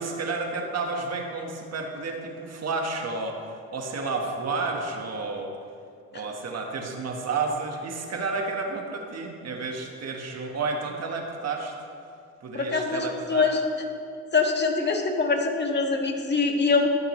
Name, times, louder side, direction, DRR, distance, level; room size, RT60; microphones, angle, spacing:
voice 1, 0.0-5.5 6.1-11.7 12.4-13.5, right 3 dB, 55° right, 2 dB, 1.6 m, -31 dB
voice 2, 12.5-13.8 14.3-16.9, left 4 dB, 35° left, 2 dB, 1.8 m, -24 dB
14.0 x 12.5 x 3.2 m, 2.4 s
cardioid pair, 90°, 30 cm